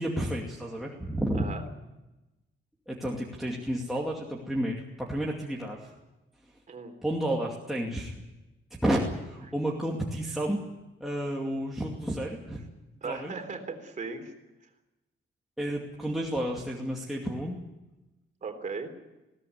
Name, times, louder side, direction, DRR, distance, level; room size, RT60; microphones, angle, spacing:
voice 1, 0.0-1.4 2.9-5.9 7.0-8.2 8.8-10.6 11.0-12.6 13.0-13.3 15.6-17.6, right 1 dB, ahead, -3 dB, 2.5 m, -31 dB
voice 2, 13.0-14.3 18.4-18.9, right 4 dB, 35° right, 6 dB, 3.7 m, -37 dB
21.0 x 17.5 x 9.6 m, 1.0 s
wide cardioid pair, 160°, 21 cm